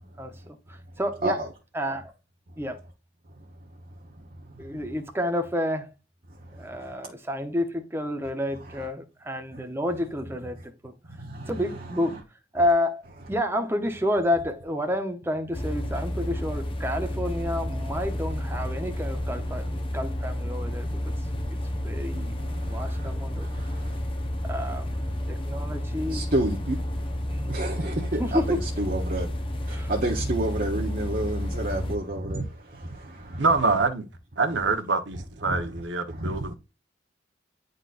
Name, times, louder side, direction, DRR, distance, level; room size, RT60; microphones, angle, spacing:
voice 1, 0.2-2.1 2.6-2.8 4.6-5.9 6.5-10.9 11.5-12.2 12.5-21.1 21.5-22.3 22.7-23.5 24.4-26.5 27.3-27.5 28.2-28.6 29.7-29.9, left 1 dB, 15° right, 0.9 m, -30 dB
voice 2, 4.2-4.9 6.6-7.0 8.7-8.8 9.5-9.6 11.1-11.6 11.9-12.2 22.4-24.0 26.0-26.8 27.5-29.3 29.6-33.5 35.4-35.8 36.1-36.5, right 1 dB, 50° right, 1.0 m, -31 dB
sound 1, 15.5-32.0, left 1 dB, 30° left, 0.9 m, -31 dB
voice 3, 33.4-34.1 34.4-36.5, right 3 dB, 70° right, 1.1 m, -25 dB
9.8 x 3.9 x 2.5 m
head